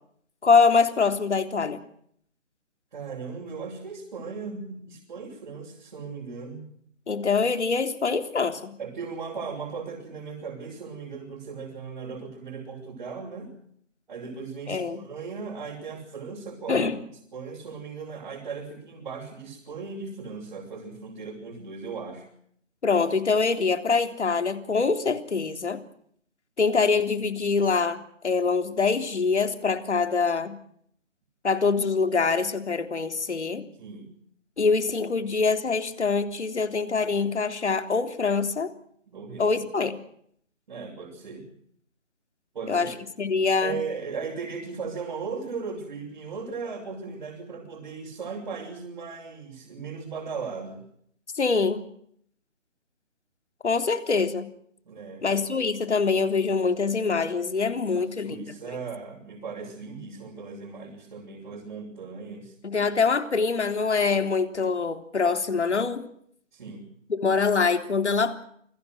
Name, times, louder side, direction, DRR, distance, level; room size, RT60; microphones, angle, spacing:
voice 1, 0.4-1.8 7.1-8.7 14.7-15.0 16.7-17.0 22.8-25.8 26.6-30.6 31.4-33.6 34.6-38.7 39.4-39.9 42.7-42.9 43.2-43.8 51.4-51.8 53.6-54.5 55.2-58.4 62.6-66.1 67.1-68.4, left 4 dB, 65° left, 8 dB, 3.7 m, -24 dB
voice 2, 2.9-6.6 8.8-13.5 14.1-16.9 17.3-22.2 33.8-34.1 39.1-39.6 40.7-41.5 42.5-42.9 43.6-50.8 54.8-55.3 57.9-62.5 66.5-66.9, right 5 dB, 40° right, -2 dB, 6.7 m, -37 dB
29.0 x 22.0 x 6.2 m, 0.66 s
hypercardioid pair, 170°, 38 cm